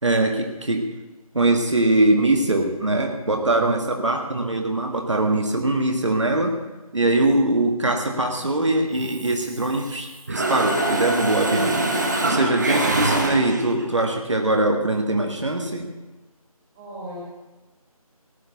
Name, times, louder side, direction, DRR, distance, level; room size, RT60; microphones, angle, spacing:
voice 1, 0.0-0.9 1.3-6.6 6.9-11.8 12.2-15.9, right 2 dB, 50° right, 4 dB, 1.7 m, -22 dB
Mechanisms, 9.0-10.0 10.3-13.8, right 2 dB, 30° right, 1.4 m, -24 dB
voice 2, 16.7-17.2, equal, 10° right, -5 dB, 2.4 m, -38 dB
18.0 x 6.8 x 8.1 m, 1.2 s
figure-of-eight pair, 170°, 19 cm